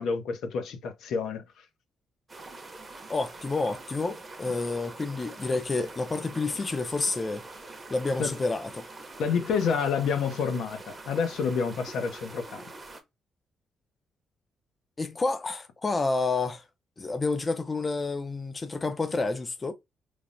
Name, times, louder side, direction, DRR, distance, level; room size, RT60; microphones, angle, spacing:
voice 1, 0.0-1.6 8.2-8.4 9.2-12.6, left 6 dB, 75° left, 0.6 m, -29 dB
sound 1, 2.3-13.0, right 3 dB, 25° right, 0.7 m, -44 dB
voice 2, 3.1-7.4 7.9-8.9 15.0-16.6 17.0-19.7, left 3 dB, 30° left, 0.4 m, -29 dB
3.2 x 2.0 x 2.5 m
cardioid pair, 90°, 0 cm